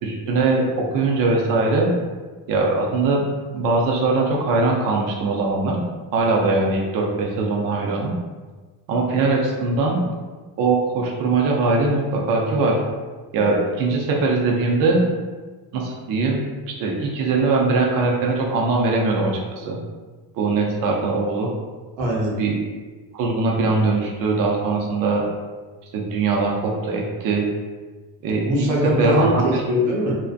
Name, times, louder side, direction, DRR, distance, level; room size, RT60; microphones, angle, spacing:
voice 1, 0.0-1.9 2.5-3.2 3.5-5.8 6.1-8.1 8.9-10.0 10.6-12.8 13.3-15.0 15.7-16.4 16.8-19.8 20.4-21.5 22.4-22.6 23.1-25.2 25.9-27.4 28.2-28.7 29.0-29.6, right 3 dB, 50° right, -1 dB, 0.5 m, -21 dB
voice 2, 22.0-22.3 28.4-30.1, equal, 85° right, -3 dB, 0.9 m, -21 dB
2.5 x 2.1 x 2.4 m, 1.3 s
cardioid pair, 140°, 44 cm